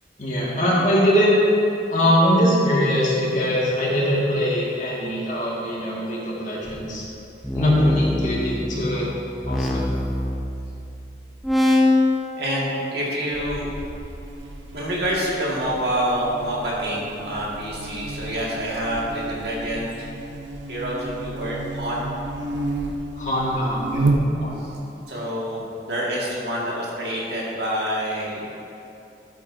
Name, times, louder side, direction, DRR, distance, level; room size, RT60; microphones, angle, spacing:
voice 1, 0.2-1.4 1.9-7.1 7.5-9.0 9.4-9.9 23.2-24.1 24.4-24.6, equal, 40° left, -6 dB, 1.9 m, -22 dB
sound 1, 6.7-11.0 11.4-12.2, left 1 dB, ahead, 0.7 m, -23 dB
voice 2, 12.4-13.7 14.7-20.1 20.7-22.1 24.5-24.8 25.1-28.5, equal, 65° right, -5 dB, 1.9 m, -27 dB
Buzz, 13.3-24.7, right 2 dB, 90° right, 0.8 m, -31 dB
12.5 x 8.3 x 2.7 m, 2.8 s
head